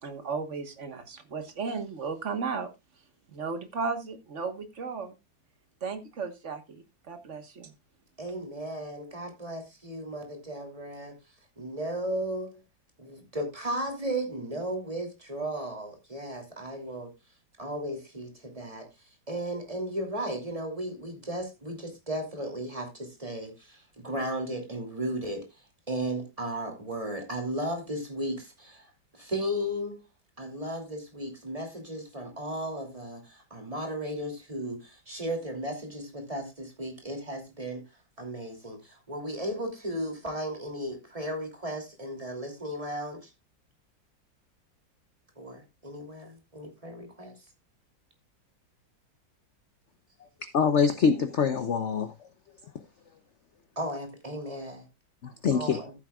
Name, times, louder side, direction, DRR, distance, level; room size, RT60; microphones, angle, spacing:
voice 1, 0.0-2.7 3.3-5.2 5.8-7.7, right 5 dB, 40° right, 1.6 m, -35 dB
voice 2, 8.2-11.2 11.6-12.6 13.0-17.1 17.6-18.9 19.3-25.5 25.9-30.0 30.4-37.8 38.2-43.3 45.4-47.4 53.8-54.9 55.5-55.9, right 1 dB, 15° right, 2.9 m, -35 dB
voice 3, 50.5-52.1 55.2-55.8, left 6 dB, 55° left, 0.8 m, -24 dB
14.5 x 8.4 x 2.4 m
omnidirectional pair, 2.1 m